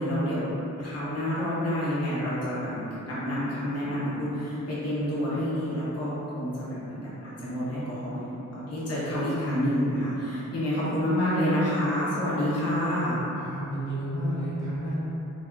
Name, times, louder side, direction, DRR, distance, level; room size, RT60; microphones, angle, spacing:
voice 1, 0.0-13.2, equal, 50° left, -10 dB, 0.7 m, -28 dB
voice 2, 13.4-15.0, right 1 dB, 75° left, -9 dB, 0.9 m, -31 dB
3.4 x 2.4 x 2.3 m, 3.0 s
wide cardioid pair, 100°, 32 cm